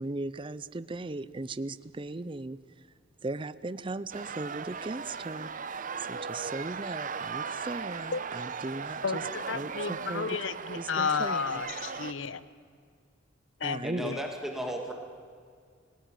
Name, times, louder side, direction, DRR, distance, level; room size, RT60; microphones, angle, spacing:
voice 1, 0.0-2.6 3.2-5.8 6.1-9.2 9.5-10.3 10.7-11.5 13.6-14.1, right 2 dB, 25° right, 15 dB, 0.5 m, -37 dB
sound 1, 4.1-12.1, right 5 dB, 45° right, 0.9 m, -37 dB
voice 2, 9.0-12.4 13.6-14.2, left 5 dB, 85° left, 15 dB, 1.0 m, -32 dB
voice 3, 13.8-14.9, equal, ahead, 2 dB, 2.1 m, -35 dB
27.5 x 18.0 x 9.0 m, 2.1 s
head